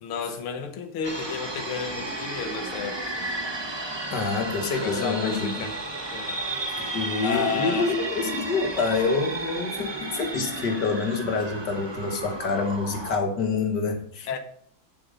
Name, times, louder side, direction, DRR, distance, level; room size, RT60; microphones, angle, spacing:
voice 1, 0.0-3.3 4.8-5.8 6.1-7.9 14.3-14.4, left 5 dB, 80° left, 1.9 m, -32 dB
sound 1, 1.0-13.2, right 2 dB, 25° right, 0.6 m, -33 dB
voice 2, 4.1-5.7 6.9-14.4, left 4 dB, 55° left, 1.8 m, -27 dB
7.5 x 7.0 x 5.4 m
omnidirectional pair, 2.4 m